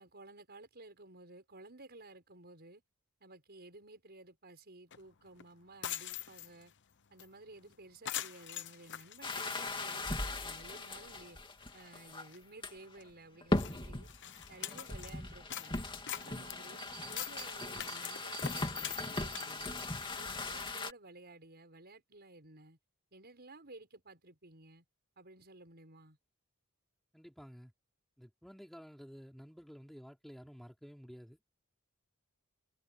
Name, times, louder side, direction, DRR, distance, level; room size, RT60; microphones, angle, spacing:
voice 1, 0.0-2.8 3.2-6.7 7.1-11.4 11.7-14.1 14.5-15.8 16.1-16.8 17.1-19.8 20.1-22.8 23.1-24.8 25.2-26.2, right 2 dB, 45° right, 6.0 m, -55 dB
sound 1, 4.9-5.0 5.4-5.5 5.7-6.7 7.2-7.3 7.6-7.7 8.1-10.2 10.6-10.7 11.3-11.4 11.6-11.9 12.3-12.4 13.0-13.1 13.5-15.1 15.5-19.9, left 11 dB, 55° left, 1.0 m, -43 dB
sound 2, 9.2-12.3 12.6-13.0 13.4-20.9, left 2 dB, 20° left, 2.5 m, -39 dB
sound 3, 16.8-20.1, right 10 dB, 85° right, 1.6 m, -50 dB
voice 2, 27.1-27.7 28.2-31.4, equal, ahead, 5.0 m, -52 dB
head